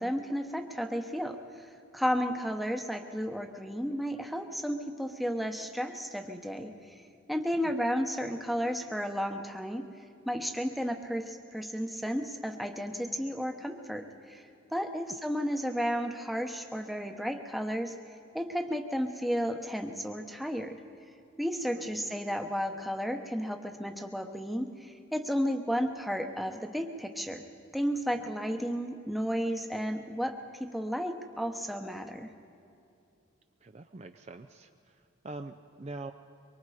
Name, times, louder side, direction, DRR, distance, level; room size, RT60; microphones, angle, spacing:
voice 1, 0.0-7.0 7.3-9.9 10.3-14.4 14.7-18.0 18.3-20.8 21.4-27.4 27.7-32.3, equal, ahead, 4 dB, 0.9 m, -33 dB
voice 2, 33.6-36.1, right 2 dB, 30° right, 7 dB, 0.5 m, -44 dB
24.0 x 23.5 x 4.9 m, 2.7 s
head